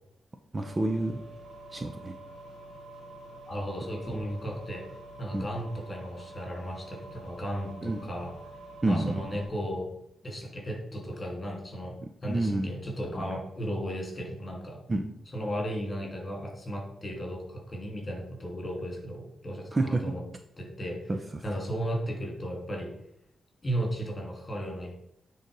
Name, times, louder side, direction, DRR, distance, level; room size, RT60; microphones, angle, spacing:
voice 1, 0.5-1.2 1.7-2.2 5.3-5.5 7.8-8.0 8.8-9.2 12.3-12.7 14.9-15.0 19.7-20.0 21.1-21.4, right 2 dB, 25° right, 7 dB, 0.7 m, -28 dB
sound 1, 0.6-9.5, right 1 dB, 55° right, 1.8 m, -48 dB
sound 2, 1.4-9.4, right 3 dB, 90° right, 1.5 m, -55 dB
voice 2, 3.5-4.8 5.2-8.3 8.8-9.9 10.2-12.0 12.2-14.8 15.3-20.2 20.6-21.0 21.4-22.9 23.6-24.9, equal, 25° left, 1 dB, 3.0 m, -35 dB
9.3 x 4.0 x 5.4 m, 0.74 s
cardioid pair, 95°, 0 cm